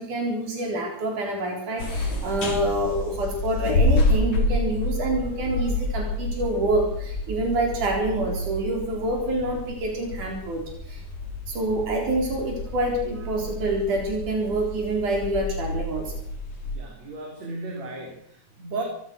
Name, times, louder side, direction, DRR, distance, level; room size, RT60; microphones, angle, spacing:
voice 1, 0.0-10.6 10.9-11.0 11.5-16.1, right 1 dB, 85° right, 1 dB, 5.6 m, -27 dB
sound 1, 1.8-16.8, left 1 dB, 70° left, 5.0 m, -29 dB
voice 2, 16.6-18.8, right 3 dB, 60° right, 1 dB, 4.9 m, -35 dB
24.0 x 17.5 x 6.3 m, 0.68 s
omnidirectional pair, 3.5 m